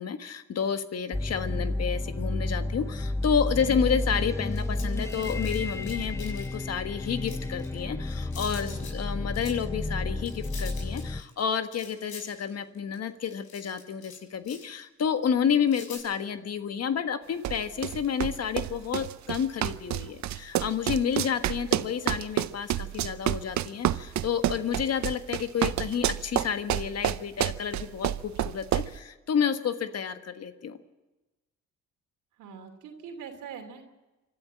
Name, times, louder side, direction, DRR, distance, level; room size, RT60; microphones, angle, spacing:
voice 1, 0.0-30.8, left 7 dB, 55° left, 9 dB, 1.4 m, -30 dB
sound 1, 1.1-11.2, left 2 dB, 10° left, 0.6 m, -31 dB
sound 2, 4.5-6.6 7.1-7.9 8.2-9.1 9.3-9.6 10.1-14.2 14.4-14.8 15.7-16.0, left 5 dB, 75° left, 7.1 m, -45 dB
voice 2, 8.6-9.0 21.7-21.8 32.4-33.9, right 6 dB, 85° right, 4 dB, 3.0 m, -44 dB
sound 3, 17.4-29.0, right 12 dB, 65° right, 0.7 m, -29 dB
25.0 x 12.5 x 8.8 m, 1.1 s
cardioid pair, 90°, 30 cm